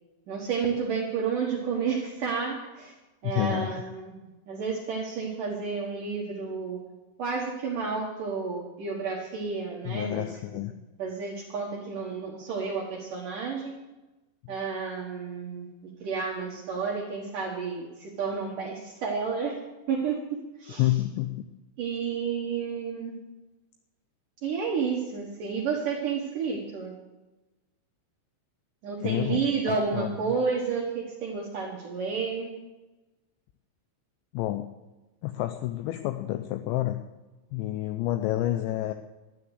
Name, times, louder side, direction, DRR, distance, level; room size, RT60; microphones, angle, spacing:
voice 1, 0.3-2.9 3.2-4.2 4.5-6.8 7.2-10.4 11.0-13.8 14.5-15.7 16.0-19.6 19.9-20.9 21.8-23.2 24.4-26.9 28.8-32.6, right 5 dB, 75° right, -1 dB, 1.9 m, -31 dB
voice 2, 3.2-3.8 9.8-10.7 20.8-21.5 29.0-30.3 34.3-34.7 35.2-37.0 37.5-38.9, left 15 dB, 90° left, 8 dB, 2.6 m, -29 dB
12.5 x 10.5 x 8.0 m, 1.1 s
omnidirectional pair, 5.9 m